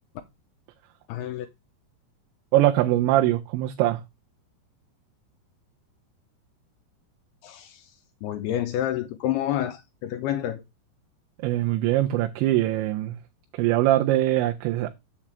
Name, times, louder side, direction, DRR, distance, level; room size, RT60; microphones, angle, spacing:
voice 1, 1.1-1.5 7.4-7.9 8.2-10.6, left 12 dB, 80° left, 2.4 m, -29 dB
voice 2, 2.5-4.0 11.4-13.2 13.5-14.9, right 14 dB, 85° right, 3.0 m, -22 dB
7.3 x 7.3 x 3.3 m
omnidirectional pair, 5.1 m